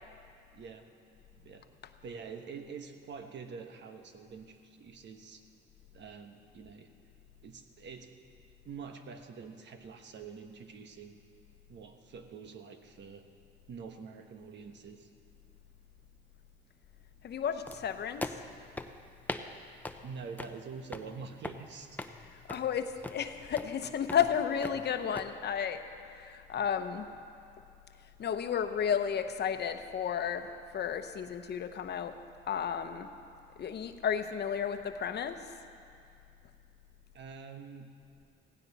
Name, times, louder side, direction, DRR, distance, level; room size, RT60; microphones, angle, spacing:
voice 1, 0.5-0.9 1.4-1.7 2.0-5.4 5.9-6.9 7.4-8.2 8.6-11.2 11.7-13.3 13.7-15.1 20.0-22.0 37.1-37.9, right 5 dB, 65° right, 6 dB, 1.2 m, -46 dB
voice 2, 17.2-18.3 22.5-25.8 26.1-27.1 28.2-32.1 32.5-33.1 33.6-35.4, left 8 dB, 55° left, 8 dB, 0.9 m, -32 dB
sound 1, 17.7-25.3, left 2 dB, 10° left, 0.7 m, -43 dB
16.5 x 16.0 x 4.1 m, 2.5 s
cardioid pair, 90°, 20 cm